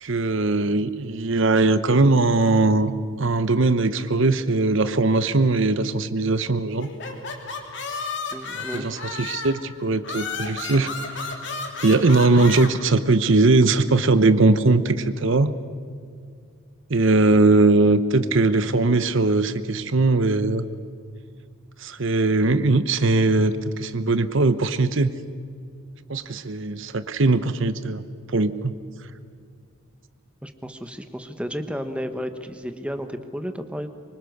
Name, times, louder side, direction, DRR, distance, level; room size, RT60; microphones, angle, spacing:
voice 1, 0.0-2.9 3.2-6.9 8.5-10.9 11.2-11.3 11.8-15.5 16.9-20.7 21.8-25.1 26.1-28.0 28.3-28.7, right 3 dB, 60° right, 12 dB, 0.9 m, -20 dB
sound 1, 6.8-9.6 10.0-12.7, left 4 dB, 55° left, 3.1 m, -32 dB
voice 2, 8.3-9.0 30.4-33.9, equal, 5° right, 7 dB, 1.2 m, -32 dB
25.5 x 24.5 x 6.6 m, 2.2 s
head